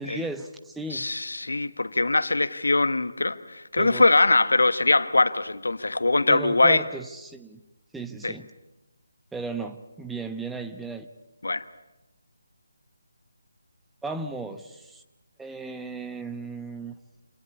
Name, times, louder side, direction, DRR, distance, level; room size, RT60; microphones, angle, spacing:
voice 1, 0.0-1.1 3.8-4.1 6.3-7.6 7.9-8.5 9.3-11.1 14.0-15.0 15.4-17.0, right 3 dB, 5° right, 1.0 m, -35 dB
voice 2, 0.9-6.8 8.2-8.3 11.4-11.6, left 2 dB, 75° left, 1.3 m, -22 dB
27.5 x 19.0 x 8.5 m
figure-of-eight pair, 155°, 0 cm